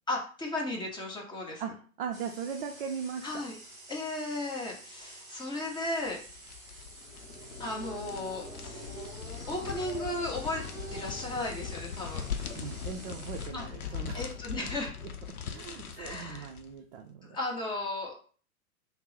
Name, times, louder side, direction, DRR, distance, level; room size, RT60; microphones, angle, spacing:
voice 1, 0.1-1.6 3.2-3.6 3.9-6.2 7.6-8.9 9.5-10.6 10.9-12.3 13.5-14.9 16.0-16.5 17.2-18.1, left 2 dB, 10° left, -1 dB, 0.7 m, -35 dB
voice 2, 2.0-3.4 12.5-14.7 15.5-17.4, right 7 dB, 45° right, 3 dB, 0.4 m, -39 dB
plasma cutting system, 2.1-13.5, right 2 dB, 10° right, 1.4 m, -50 dB
sound 1, 6.1-16.7, left 8 dB, 80° left, 0.6 m, -41 dB
sound 2, 6.8-15.4, left 1 dB, 55° left, 1.1 m, -47 dB
3.5 x 2.0 x 4.1 m, 0.41 s
figure-of-eight pair, 105°, 43 cm